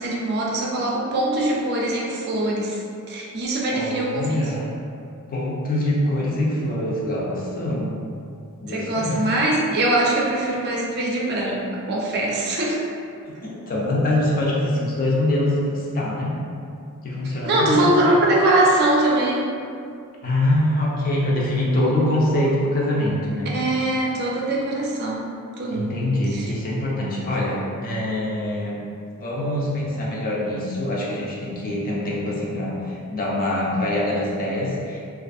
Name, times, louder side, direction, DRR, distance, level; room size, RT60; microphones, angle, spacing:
voice 1, 0.0-2.8 3.1-4.4 8.7-12.8 17.5-19.5 23.5-26.0 26.3-26.5 31.7-31.8, right 1 dB, 45° right, -3 dB, 0.4 m, -22 dB
voice 2, 3.7-4.8 5.3-8.0 8.6-9.2 13.4-16.4 17.0-17.9 20.2-23.5 25.7-28.8 29.2-35.0, left 1 dB, 40° left, -5 dB, 0.5 m, -24 dB
2.5 x 2.3 x 2.5 m, 2.4 s
head